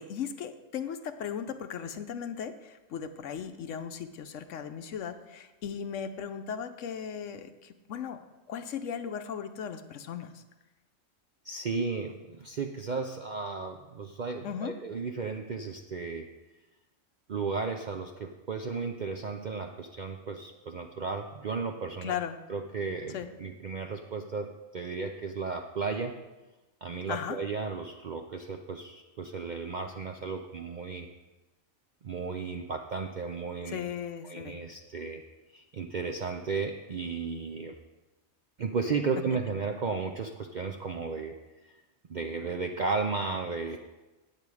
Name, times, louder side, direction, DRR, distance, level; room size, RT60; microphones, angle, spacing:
voice 1, 0.0-8.2 8.5-10.4 14.4-14.8 22.0-22.4 23.1-23.3 27.1-27.4 33.7-34.6, left 8 dB, 70° left, 9 dB, 1.0 m, -37 dB
voice 2, 11.4-16.3 17.3-22.2 22.5-26.2 26.8-31.1 32.0-33.9 34.2-35.2 35.5-37.7 38.6-41.4 41.6-41.7 42.1-43.8, right 4 dB, 55° right, 4 dB, 0.5 m, -34 dB
8.9 x 8.7 x 4.8 m, 1.1 s
omnidirectional pair, 1.4 m